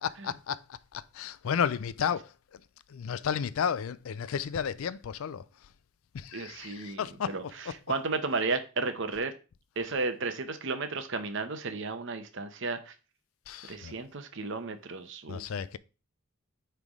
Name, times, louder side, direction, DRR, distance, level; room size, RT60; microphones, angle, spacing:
voice 1, 0.0-2.6 2.9-5.4 6.1-7.7 13.5-14.0 15.3-15.8, left 7 dB, 75° left, 0.4 m, -33 dB
voice 2, 6.3-7.0 7.3-7.4 7.9-9.3 9.8-12.9 13.7-15.4, right 3 dB, 60° right, 0.8 m, -33 dB
9.1 x 3.4 x 3.6 m
head